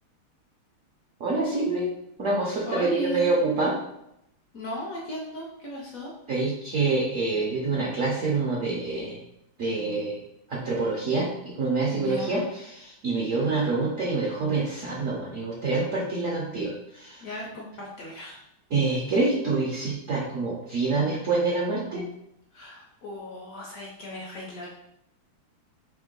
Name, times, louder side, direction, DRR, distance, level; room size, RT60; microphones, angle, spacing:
voice 1, 1.2-1.9 2.2-3.8 6.3-9.2 9.6-10.2 10.5-17.2 18.7-22.1, right 3 dB, 75° right, -3 dB, 0.7 m, -26 dB
voice 2, 2.6-3.4 4.5-6.1 11.9-12.4 17.2-18.4 22.5-24.7, equal, 70° left, -3 dB, 0.8 m, -36 dB
3.7 x 2.8 x 3.8 m, 0.81 s
omnidirectional pair, 2.3 m